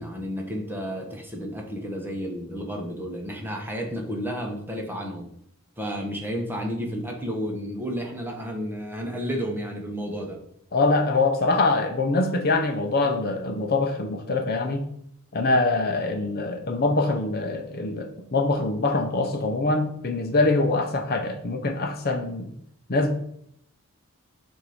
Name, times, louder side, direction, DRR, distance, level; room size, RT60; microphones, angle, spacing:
voice 1, 0.0-5.3 5.8-10.4, equal, 10° right, 1 dB, 0.9 m, -31 dB
voice 2, 10.7-14.8 15.3-22.5 22.9-23.1, left 3 dB, 45° left, 5 dB, 0.7 m, -24 dB
7.2 x 2.7 x 4.9 m, 0.68 s
head